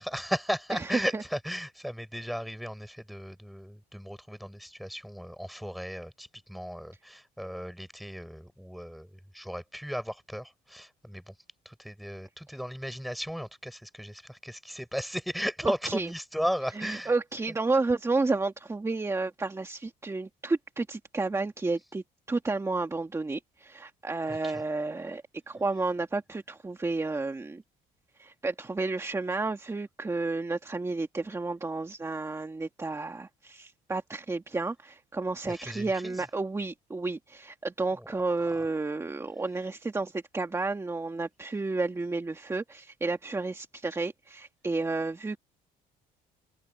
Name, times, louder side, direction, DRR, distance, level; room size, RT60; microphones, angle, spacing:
voice 1, 0.0-11.3 11.7-17.1 24.3-24.6 35.5-36.2 38.0-38.1, equal, ahead, 5.8 m, -36 dB
voice 2, 0.7-1.2 15.6-16.1 16.7-27.6 28.2-45.4, right 3 dB, 15° right, 2.0 m, -31 dB
cardioid pair, 110°, 17 cm